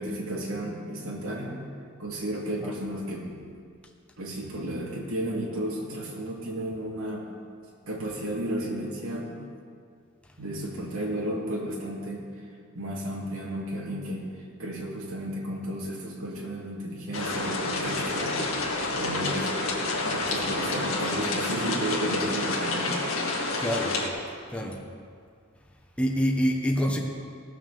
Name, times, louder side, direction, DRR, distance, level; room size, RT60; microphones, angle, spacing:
voice 1, 0.0-1.6 2.0-3.3 4.2-7.3 7.9-9.3 10.4-12.2 12.7-14.3 14.6-18.4 18.9-19.5 19.8-23.0, right 1 dB, 85° right, -4 dB, 2.4 m, -33 dB
sound 1, 17.1-24.1, left 2 dB, 75° left, 2.0 m, -29 dB
voice 2, 23.6-24.0 24.5-24.8 26.0-27.0, equal, 5° left, 0 dB, 1.0 m, -26 dB
18.5 x 6.4 x 6.9 m, 2.2 s
head